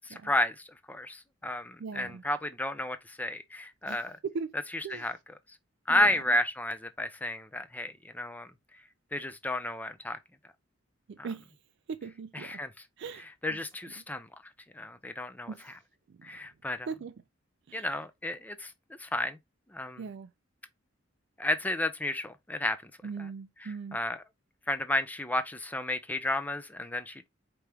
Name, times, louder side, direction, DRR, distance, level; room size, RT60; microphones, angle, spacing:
voice 1, 0.2-4.2 4.7-5.2 5.9-8.5 9.1-10.2 12.3-12.7 13.2-14.3 14.7-15.8 16.2-16.9 17.7-18.7 19.0-19.4 19.7-20.0 21.4-22.9 23.2-23.3 23.6-24.2 24.7-27.3, left 1 dB, 10° left, 0.5 m, -32 dB
voice 2, 1.8-2.2 3.8-4.5 4.8-5.0 5.9-6.2 11.1-11.5 11.9-12.6 13.0-13.3 13.5-13.6 15.5-15.7 16.9-17.1 17.7-17.9 20.0-20.3 23.0-24.0, right 5 dB, 60° right, 0.4 m, -39 dB
4.8 x 2.9 x 3.3 m
head